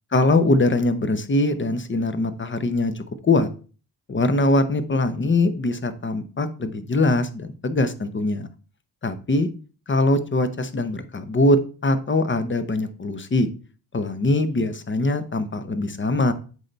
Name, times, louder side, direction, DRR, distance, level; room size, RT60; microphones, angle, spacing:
voice 1, 0.1-3.5 4.1-8.5 9.0-9.5 9.9-13.5 13.9-16.3, left 2 dB, 30° left, 10 dB, 0.8 m, -22 dB
8.1 x 3.4 x 3.9 m, 0.37 s
cardioid pair, 95°, 40 cm